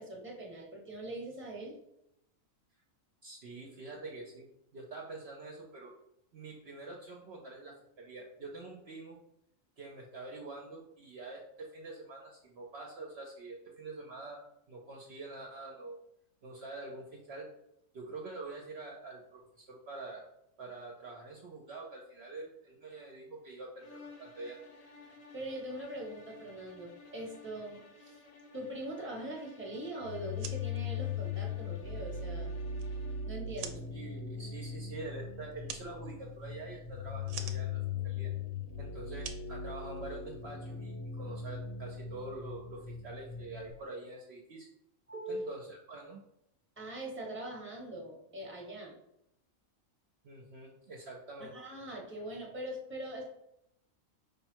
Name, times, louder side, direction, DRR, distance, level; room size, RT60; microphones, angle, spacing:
voice 1, 0.0-1.7 25.3-28.2 28.5-32.6 33.2-33.9 45.1-45.5 46.8-49.0 51.4-53.3, right 1 dB, 10° right, -1 dB, 1.0 m, -42 dB
voice 2, 3.2-5.9 6.3-9.2 9.8-14.4 14.7-16.0 16.4-17.5 17.9-20.2 20.6-24.6 33.9-38.3 38.8-44.7 45.3-46.2 50.2-51.5, right 2 dB, 60° right, -1 dB, 0.8 m, -46 dB
sound 1, 23.8-33.4, left 3 dB, 50° left, 0.4 m, -55 dB
sound 2, 30.0-43.7, left 5 dB, 80° left, 1.0 m, -39 dB
sound 3, 30.2-40.4, right 7 dB, 85° right, 1.0 m, -50 dB
5.1 x 2.2 x 4.4 m, 0.80 s
omnidirectional pair, 1.4 m